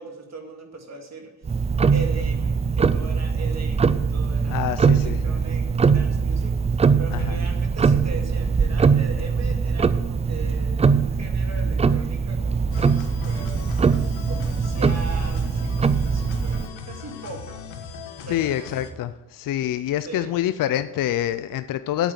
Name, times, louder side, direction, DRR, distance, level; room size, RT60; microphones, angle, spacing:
voice 1, 0.0-1.3 1.9-13.6 14.3-17.6 18.2-18.8 20.0-20.3, right 3 dB, 35° right, 3 dB, 2.2 m, -39 dB
Tick-tock, 1.4-16.7, right 5 dB, 15° right, 0.3 m, -22 dB
voice 2, 4.5-5.2 7.1-7.4 18.3-22.1, left 12 dB, 50° left, 12 dB, 0.5 m, -26 dB
sound 1, 12.7-18.9, left 5 dB, 85° left, 1.5 m, -38 dB
8.8 x 8.1 x 7.4 m, 1.1 s
cardioid pair, 105°, 43 cm